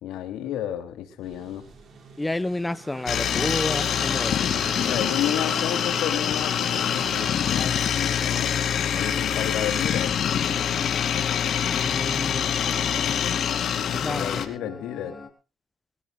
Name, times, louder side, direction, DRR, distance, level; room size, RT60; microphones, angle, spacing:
voice 1, 0.0-1.7 4.8-8.6 8.9-10.2 13.5-15.2, left 11 dB, 90° left, 2.9 m, -31 dB
sound 1, 1.2-7.3, right 5 dB, 55° right, 5.5 m, -41 dB
voice 2, 2.2-4.4 11.7-12.5 13.9-14.4, left 2 dB, 15° left, 0.9 m, -30 dB
sound 2, 3.1-14.5, left 8 dB, 65° left, 2.5 m, -25 dB
sound 3, 7.3-15.3, left 5 dB, 30° left, 3.3 m, -39 dB
23.5 x 16.0 x 2.4 m
cardioid pair, 90°, 0 cm